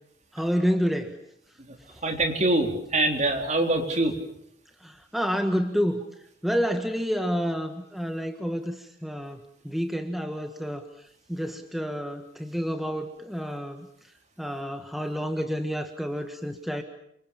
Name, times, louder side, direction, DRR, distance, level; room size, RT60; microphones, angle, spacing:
voice 1, 0.3-1.2 4.8-6.0 6.4-9.4 9.6-13.9 14.4-16.8, equal, ahead, 5 dB, 1.6 m, -29 dB
voice 2, 2.0-4.1, right 2 dB, 40° right, 4 dB, 3.9 m, -24 dB
29.0 x 26.0 x 7.3 m, 0.73 s
head